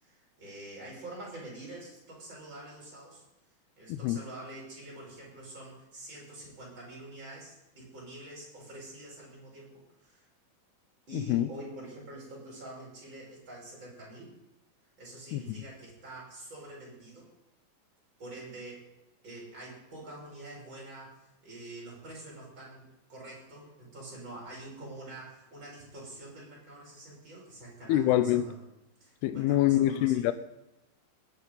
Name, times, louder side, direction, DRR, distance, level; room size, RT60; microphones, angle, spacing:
voice 1, 0.0-3.2 3.8-10.2 11.1-14.3 15.0-17.3 18.2-18.9 19.2-28.6 29.0-30.3, right 2 dB, 25° right, 6.1 m, -46 dB
voice 2, 11.1-11.5 15.3-15.6 27.9-28.5 29.2-30.3, left 13 dB, 85° left, 2.3 m, -25 dB
20.0 x 9.6 x 3.9 m
omnidirectional pair, 5.1 m